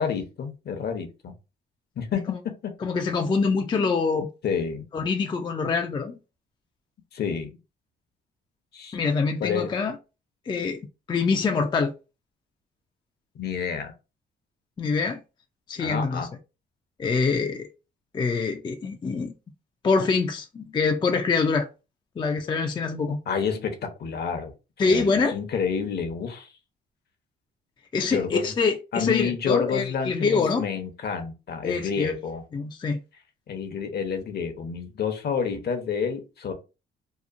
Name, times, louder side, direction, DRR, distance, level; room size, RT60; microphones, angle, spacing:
voice 1, 0.0-1.3 2.0-2.7 4.4-4.9 7.1-7.6 8.7-9.0 9.4-9.7 13.3-13.9 15.8-16.3 23.3-24.5 24.9-26.5 28.1-28.5 28.9-32.4 33.5-36.5, left 6 dB, 55° left, 0.7 m, -29 dB
voice 2, 2.8-4.3 4.9-6.2 8.9-10.0 10.5-11.9 14.8-15.2 15.7-16.3 17.0-17.7 18.1-19.3 19.8-21.7 22.2-23.2 24.8-25.4 27.9-30.6 31.6-32.2 32.5-33.0, left 4 dB, 25° left, 0.3 m, -25 dB
2.8 x 2.0 x 2.4 m
cardioid pair, 90°, 20 cm